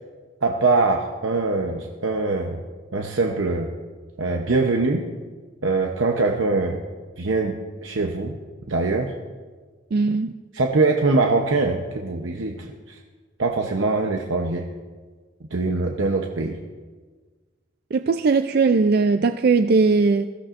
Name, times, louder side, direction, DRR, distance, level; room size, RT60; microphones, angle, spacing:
voice 1, 0.4-2.6 2.9-3.7 4.2-5.0 5.6-6.8 7.2-8.4 8.7-9.1 10.5-13.0 13.4-14.6 15.5-16.6, right 3 dB, 85° right, 2 dB, 0.9 m, -23 dB
voice 2, 9.9-10.3 17.9-20.3, right 4 dB, 55° right, 9 dB, 0.4 m, -19 dB
21.5 x 15.5 x 2.5 m, 1.5 s
head